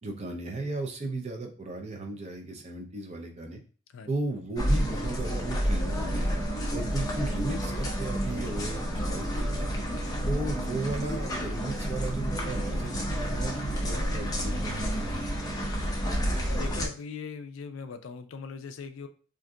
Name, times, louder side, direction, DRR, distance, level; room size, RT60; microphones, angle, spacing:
voice 1, 0.0-3.6 4.1-6.4 6.7-9.8 10.3-15.0, right 2 dB, 30° right, 2 dB, 0.5 m, -35 dB
sound 1, 4.6-16.9, equal, 20° left, 0.5 m, -30 dB
voice 2, 16.5-19.1, left 5 dB, 65° left, 9 dB, 0.4 m, -40 dB
2.5 x 2.3 x 3.6 m, 0.40 s
head